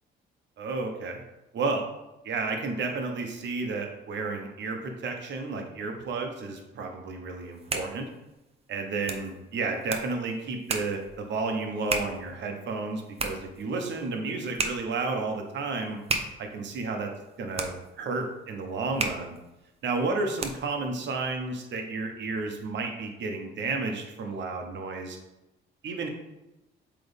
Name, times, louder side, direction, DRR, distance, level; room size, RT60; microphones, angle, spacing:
voice 1, 0.6-1.2 1.5-1.9 2.2-8.1 8.7-16.0 16.4-17.1 17.4-19.4 19.8-25.2 25.8-26.1, right 3 dB, 65° right, 4 dB, 1.1 m, -32 dB
sound 1, 7.4-20.8, right 3 dB, 30° right, 0.7 m, -37 dB
7.7 x 3.4 x 3.6 m, 0.96 s
cardioid pair, 90°, 20 cm